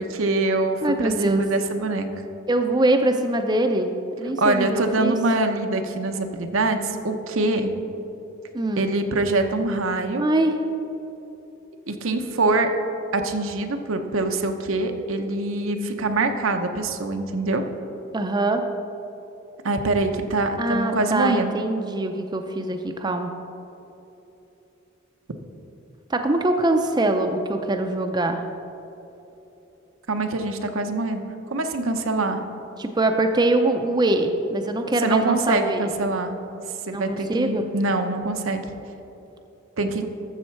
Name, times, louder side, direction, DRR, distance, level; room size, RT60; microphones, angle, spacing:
voice 1, 0.0-2.1 4.4-7.7 8.8-10.2 11.9-12.7 13.1-17.6 19.6-21.6 30.1-31.2 31.5-32.4 35.0-36.4 36.9-38.6 39.8-40.0, right 2 dB, 85° right, 6 dB, 0.8 m, -24 dB
voice 2, 0.8-1.4 2.5-3.9 4.2-5.2 8.5-8.9 10.2-10.5 18.1-18.6 20.6-23.3 26.1-28.4 32.8-35.9 36.9-37.7, right 2 dB, 20° right, 6 dB, 0.5 m, -23 dB
12.5 x 7.2 x 4.5 m, 3.0 s
head